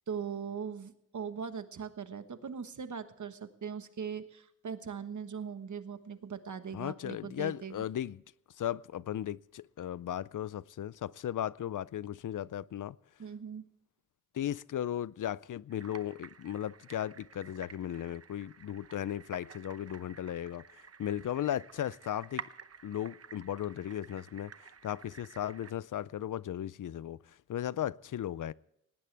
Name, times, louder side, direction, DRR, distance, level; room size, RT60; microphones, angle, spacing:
voice 1, 0.1-7.8 13.2-13.7, right 6 dB, 70° right, 1.4 m, -40 dB
voice 2, 6.7-8.2 8.6-13.0 14.3-20.6 21.0-22.4 22.8-24.5 24.8-28.5, left 11 dB, 80° left, 0.5 m, -36 dB
sound 1, 15.7-25.7, right 6 dB, 50° right, 0.9 m, -51 dB
19.0 x 18.5 x 3.4 m
wide cardioid pair, 115°, 31 cm